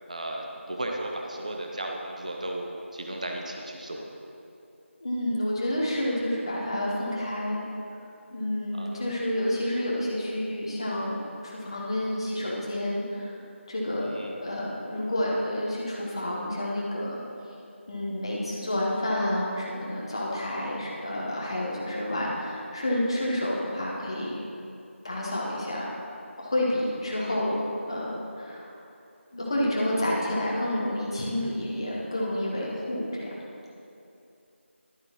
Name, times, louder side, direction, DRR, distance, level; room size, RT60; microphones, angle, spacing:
voice 1, 0.1-4.1 8.7-9.1 14.0-14.4 27.1-27.4, right 1 dB, 35° right, 1 dB, 0.6 m, -35 dB
voice 2, 5.0-7.6 8.3-13.3 13.7-17.2 17.9-24.4 25.0-25.9 26.4-27.6 27.9-28.7 29.3-33.3, left 1 dB, 20° left, -5 dB, 1.1 m, -29 dB
11.5 x 9.5 x 3.0 m, 2.7 s
figure-of-eight pair, 170°, 7 cm